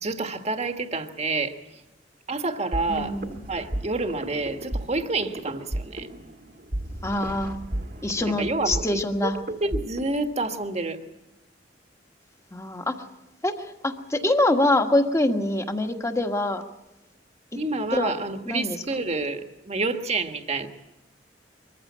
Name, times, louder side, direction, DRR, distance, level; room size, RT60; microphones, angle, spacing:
voice 1, 0.0-1.6 2.3-3.2 3.5-6.1 8.2-11.0 17.5-20.7, right 3 dB, 35° right, 7 dB, 1.4 m, -28 dB
sound 1, 2.7-10.3, right 1 dB, 55° right, 1.6 m, -34 dB
voice 2, 2.9-3.4 7.0-7.6 8.0-9.4 12.5-12.9 13.4-13.5 13.8-16.6 17.9-18.1 18.5-18.8, left 1 dB, 15° left, 6 dB, 1.5 m, -24 dB
23.0 x 15.0 x 8.5 m, 0.96 s
head